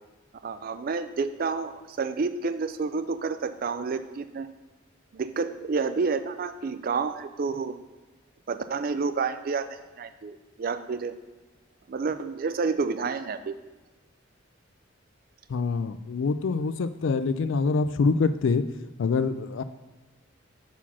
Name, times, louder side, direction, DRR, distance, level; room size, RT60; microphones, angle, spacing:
voice 1, 0.4-4.5 5.1-7.7 8.5-9.7 10.0-11.2 11.9-13.5, right 4 dB, 50° right, 11 dB, 0.4 m, -29 dB
voice 2, 15.5-18.6 19.0-19.6, left 4 dB, 75° left, 13 dB, 0.4 m, -25 dB
5.7 x 4.4 x 6.0 m, 1.2 s
head